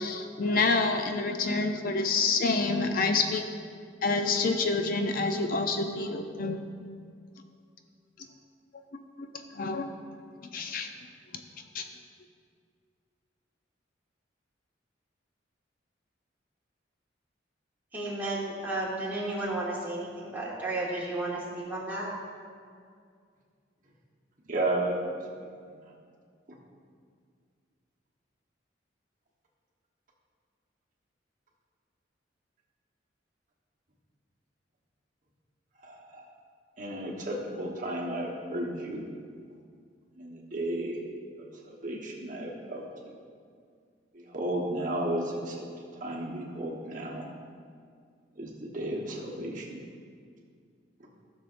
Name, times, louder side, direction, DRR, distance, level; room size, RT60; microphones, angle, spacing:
voice 1, 0.0-3.5 4.0-6.6 8.9-9.9 10.5-10.9 11.7-11.8, left 3 dB, 50° left, 6 dB, 0.4 m, -28 dB
voice 2, 17.9-22.1, right 2 dB, 10° right, -6 dB, 1.6 m, -33 dB
voice 3, 24.5-25.0 35.8-36.3 36.8-39.0 40.1-41.0 41.4-42.8 44.3-45.6 46.0-47.2 48.4-49.6, right 1 dB, 45° right, -2 dB, 1.1 m, -33 dB
14.5 x 6.3 x 2.5 m, 2.2 s
head